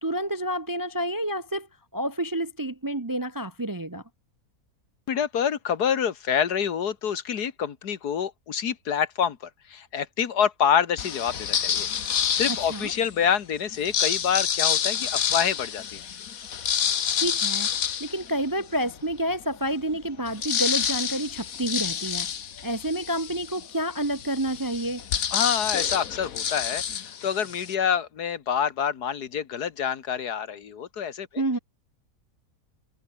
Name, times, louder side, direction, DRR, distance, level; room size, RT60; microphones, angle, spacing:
voice 1, 0.0-1.7 1.9-4.0 12.5-12.9 17.1-17.7 18.0-22.3 22.6-25.0 31.4-31.6, right 1 dB, 25° right, 0.4 m, -29 dB
voice 2, 5.1-11.9 12.1-16.0 25.3-31.4, left 8 dB, 90° left, 2.0 m, -27 dB
sound 1, 11.0-13.1 13.7-18.9 19.4-19.5 19.7-27.7, left 8 dB, 65° left, 1.6 m, -28 dB
omnidirectional pair, 1.6 m